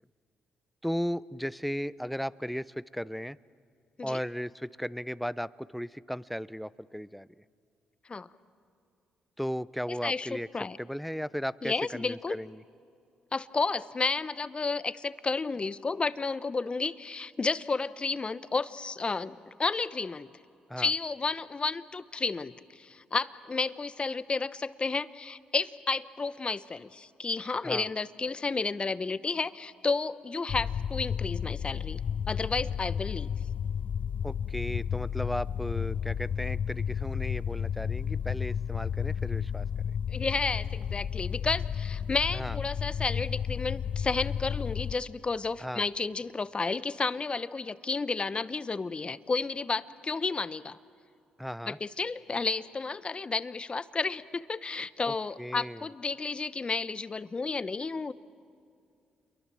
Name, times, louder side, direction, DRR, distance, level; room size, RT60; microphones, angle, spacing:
voice 1, 0.8-3.4 4.0-7.3 9.4-10.5 10.8-12.6 20.7-20.9 27.6-27.9 34.2-39.9 42.3-42.6 45.6-45.8 51.4-51.8 55.1-55.8, equal, ahead, 19 dB, 0.6 m, -36 dB
voice 2, 11.6-12.4 13.3-20.3 20.8-32.0 32.3-33.3 40.1-50.8 51.7-58.1, left 4 dB, 35° left, 15 dB, 0.9 m, -32 dB
sound 1, 30.5-44.9, left 8 dB, 50° left, 0.6 m, -32 dB
29.0 x 23.0 x 7.6 m, 2.5 s
supercardioid pair, 55°, 3 cm